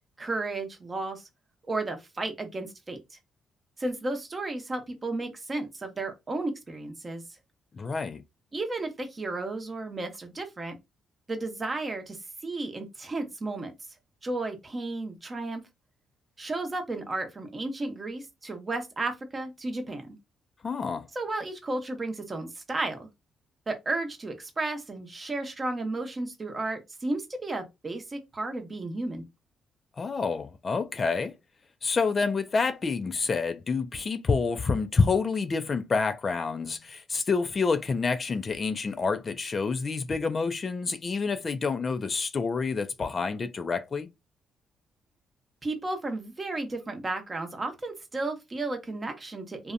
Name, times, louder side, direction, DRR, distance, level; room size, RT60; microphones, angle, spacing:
voice 1, 0.2-1.2 1.7-3.2 3.8-7.2 8.5-10.8 11.3-13.7 14.2-15.6 16.4-20.2 21.1-23.1 23.7-29.2 45.6-49.7, right 2 dB, 30° right, 0.7 m, -33 dB
voice 2, 7.8-8.2 20.6-21.1 30.0-31.3 31.8-44.1, left 4 dB, 40° left, 0.3 m, -28 dB
2.6 x 2.1 x 2.5 m
cardioid pair, 90°, 0 cm